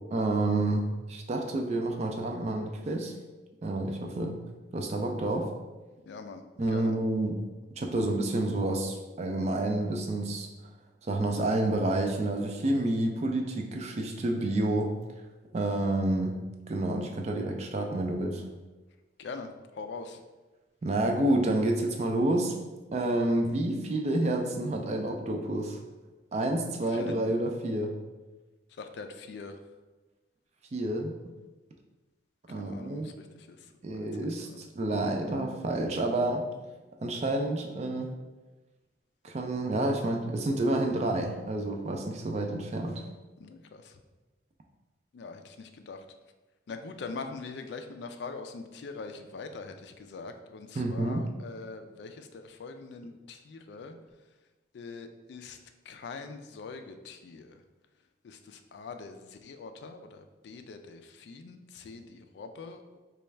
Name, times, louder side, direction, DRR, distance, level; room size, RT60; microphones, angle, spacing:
voice 1, 0.1-3.1 3.6-4.4 4.7-5.5 6.6-7.4 7.8-10.5 11.0-15.0 15.5-16.4 16.7-18.4 20.8-25.8 26.3-28.0 30.7-31.1 32.5-33.1 33.8-36.5 37.0-38.1 39.2-43.0 50.8-51.2, right 1 dB, 35° right, 3 dB, 0.3 m, -29 dB
voice 2, 6.1-6.4 6.7-7.0 19.2-20.2 26.9-27.1 28.8-29.6 32.6-34.6 43.4-44.0 45.1-46.0 46.7-54.0 54.7-55.6 55.9-57.6 58.2-63.0, left 4 dB, 70° left, 7 dB, 0.3 m, -43 dB
4.1 x 2.3 x 3.2 m, 1.2 s
head